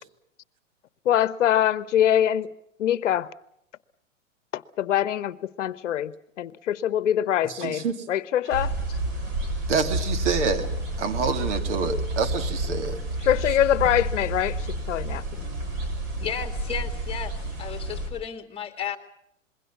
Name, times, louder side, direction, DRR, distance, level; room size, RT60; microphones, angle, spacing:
voice 1, 1.0-2.5 2.8-3.3 4.5-8.7 13.2-15.8, left 11 dB, 65° left, 1.0 m, -24 dB
voice 2, 7.4-8.0 9.7-10.7 11.0-13.0, right 5 dB, 60° right, 2.6 m, -27 dB
sound 1, 8.5-18.1, right 1 dB, 45° right, 6.7 m, -30 dB
voice 3, 16.2-19.0, left 8 dB, 15° left, 2.4 m, -34 dB
26.5 x 21.5 x 5.9 m
figure-of-eight pair, 105°, 40 cm